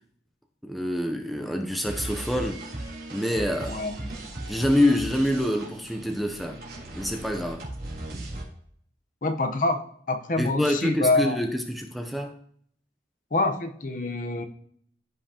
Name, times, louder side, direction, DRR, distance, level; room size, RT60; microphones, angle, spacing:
voice 1, 0.6-2.6 3.1-3.8 4.5-6.6 6.9-7.7 10.4-12.3, left 1 dB, ahead, 0.6 m, -26 dB
sound 1, 1.8-8.4, right 1 dB, 55° right, 3.2 m, -37 dB
voice 2, 3.7-4.1 9.2-9.8 10.1-11.4 13.3-14.4, left 2 dB, 45° left, 0.9 m, -26 dB
14.5 x 5.7 x 2.9 m
head